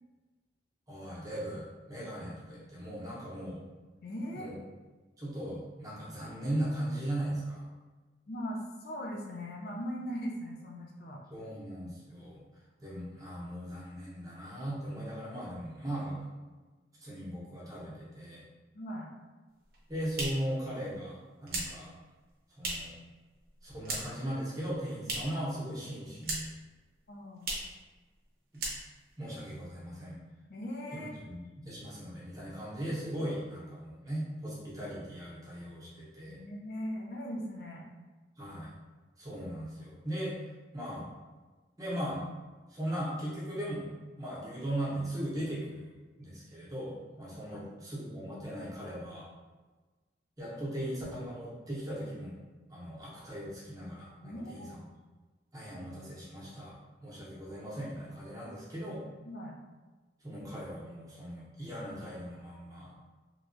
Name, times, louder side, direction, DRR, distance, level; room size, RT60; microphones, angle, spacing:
voice 1, 0.9-3.6 4.3-4.5 5.2-7.6 11.3-12.4 12.8-16.2 17.0-18.4 19.9-21.9 22.6-22.9 23.6-26.5 29.2-30.2 30.9-36.4 38.4-38.7 39.2-40.4 40.7-41.1 41.8-42.3 42.7-43.9 44.2-45.9 46.2-49.3 50.4-52.4 52.7-54.8 55.5-56.8 57.0-59.0 60.2-62.9, right 1 dB, 20° right, -7 dB, 0.8 m, -38 dB
voice 2, 4.0-4.5 8.3-11.2 18.7-19.1 27.1-27.5 30.5-31.1 36.3-37.9 47.5-47.7 54.2-54.7 59.2-59.6, equal, 55° left, -1 dB, 0.4 m, -39 dB
sound 1, 19.6-23.0 23.3-24.3 24.6-25.5 25.8-26.7 26.9-27.0 27.4-27.8 28.1-28.3 28.5-29.2, right 2 dB, 55° right, 0.7 m, -38 dB
3.1 x 2.3 x 2.5 m, 1.3 s
head